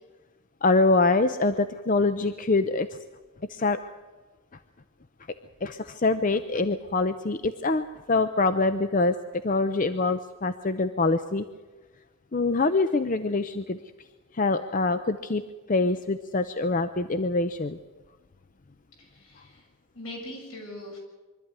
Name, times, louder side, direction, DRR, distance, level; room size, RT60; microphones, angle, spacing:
voice 1, 0.6-2.9 3.5-3.8 5.6-11.4 12.3-13.8 14.3-15.4 15.7-17.8 19.4-19.5, left 3 dB, 35° left, 10 dB, 0.6 m, -25 dB
voice 2, 19.0-19.7 19.9-21.0, left 1 dB, 75° left, 0 dB, 7.3 m, -41 dB
24.0 x 13.0 x 9.6 m, 1.3 s
head